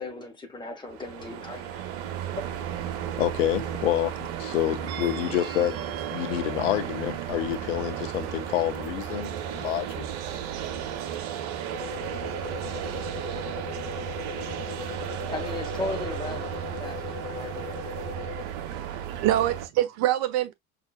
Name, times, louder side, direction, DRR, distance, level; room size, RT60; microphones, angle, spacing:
voice 1, 0.0-1.8 15.3-17.8, left 2 dB, 10° left, 1.2 m, -36 dB
sound 1, 0.9-19.7, right 9 dB, 55° right, 0.9 m, -34 dB
voice 2, 3.2-4.1 4.4-5.8 6.1-10.0, left 13 dB, 65° left, 0.7 m, -28 dB
sound 2, 11.7-18.4, left 6 dB, 30° left, 1.3 m, -39 dB
voice 3, 18.6-20.5, right 13 dB, 40° right, 0.4 m, -26 dB
5.7 x 2.4 x 2.3 m
figure-of-eight pair, 75°, 42 cm